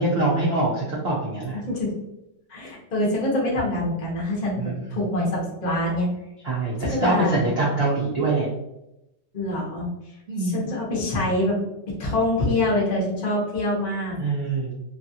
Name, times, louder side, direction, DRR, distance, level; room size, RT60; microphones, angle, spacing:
voice 1, 0.0-1.6 4.6-4.8 6.4-8.5 10.3-10.7 14.2-14.7, right 2 dB, 90° right, -6 dB, 0.5 m, -24 dB
voice 2, 1.5-1.9 2.5-6.1 6.8-7.4 9.3-9.9 10.4-11.6 12.0-14.2, left 1 dB, 40° left, -4 dB, 0.7 m, -25 dB
3.1 x 2.4 x 2.7 m, 0.89 s
omnidirectional pair, 2.0 m